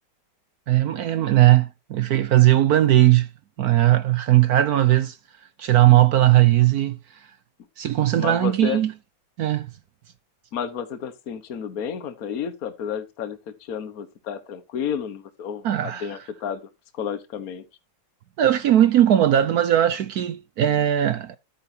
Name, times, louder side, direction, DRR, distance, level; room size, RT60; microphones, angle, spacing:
voice 1, 0.7-3.3 3.6-5.2 5.6-7.0 7.8-8.9 9.4-9.7 15.6-16.0 18.4-21.4, right 13 dB, 65° right, 1.0 m, -18 dB
voice 2, 8.1-8.8 10.5-17.6, left 8 dB, 55° left, 1.5 m, -31 dB
13.0 x 8.5 x 2.8 m
omnidirectional pair, 2.0 m